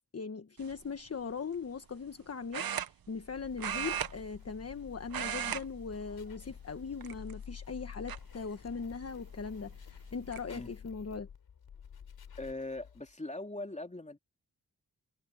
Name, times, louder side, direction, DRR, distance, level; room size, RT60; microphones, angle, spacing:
voice 1, 0.0-11.3, left 5 dB, 45° left, 1.3 m, -40 dB
sound 1, 0.6-0.9 2.5-3.3 3.6-4.8 5.0-5.6 5.9-6.2 7.0-7.5 8.1-8.2 9.6-9.7 10.0-10.4, right 9 dB, 75° right, 1.1 m, -36 dB
sound 2, 3.2-13.1, left 7 dB, 90° left, 4.6 m, -50 dB
voice 2, 12.4-14.2, left 2 dB, 20° left, 3.4 m, -40 dB
cardioid pair, 60°, 35 cm